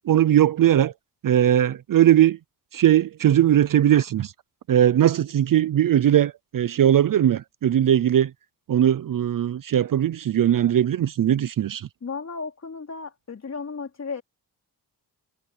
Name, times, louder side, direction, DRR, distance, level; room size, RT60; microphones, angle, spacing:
voice 1, 0.1-0.9 1.2-2.4 2.7-4.3 4.7-8.3 8.7-11.9, right 11 dB, 55° right, 0.5 m, -19 dB
voice 2, 12.0-14.2, left 5 dB, 40° left, 4.3 m, -34 dB
wide cardioid pair, 125°, 41 cm